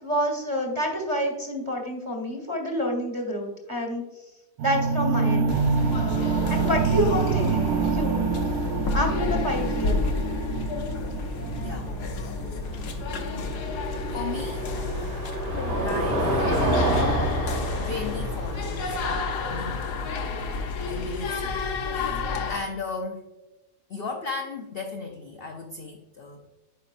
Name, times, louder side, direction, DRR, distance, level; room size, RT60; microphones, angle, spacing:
voice 1, 0.0-4.0 4.6-5.6 6.5-8.2 8.9-9.9, equal, 20° right, 2 dB, 1.4 m, -28 dB
sound 1, 4.6-14.6, right 5 dB, 75° right, 1.1 m, -27 dB
sound 2, 5.5-22.6, left 4 dB, 90° left, 1.4 m, -30 dB
Car passing by / Engine, 11.4-22.1, right 1 dB, 45° right, 2.4 m, -29 dB
voice 2, 11.6-12.2 12.7-13.0 14.1-14.7 15.7-16.4 17.8-20.1 20.9-21.6 21.9-23.2 23.9-26.5, left 4 dB, 55° left, 3 dB, 0.6 m, -36 dB
9.1 x 5.6 x 2.5 m, 1.0 s
omnidirectional pair, 1.6 m